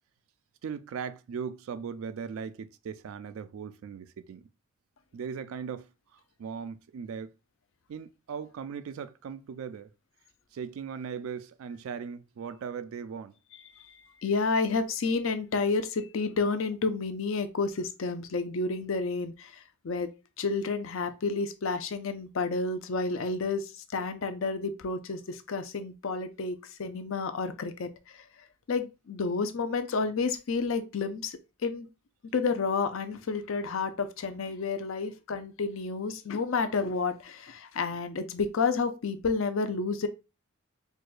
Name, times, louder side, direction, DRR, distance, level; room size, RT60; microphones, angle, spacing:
voice 1, 0.6-4.4 5.1-5.9 6.4-7.3 7.9-9.9 10.5-13.3, right 6 dB, 75° right, 0.3 m, -38 dB
voice 2, 13.7-20.1 20.4-28.2 28.7-31.9 32.3-40.1, left 4 dB, 65° left, 0.5 m, -30 dB
4.6 x 2.2 x 2.4 m
head